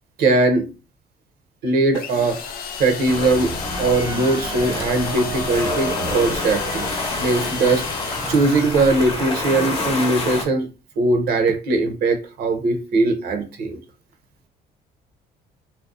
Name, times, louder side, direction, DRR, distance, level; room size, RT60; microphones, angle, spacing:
voice 1, 0.2-0.7 1.6-2.4 2.8-3.5 3.8-6.9 7.2-7.9 8.3-10.7 11.0-13.8, right 2 dB, 65° right, 6 dB, 0.6 m, -20 dB
sound 1, 1.9-9.6, left 6 dB, 60° left, 0.4 m, -34 dB
sound 2, 3.1-10.4, left 3 dB, 35° left, 0.8 m, -28 dB
sound 3, 3.6-10.0, right 3 dB, 20° right, 0.5 m, -34 dB
2.5 x 2.0 x 2.4 m, 0.31 s
cardioid pair, 110°, 17 cm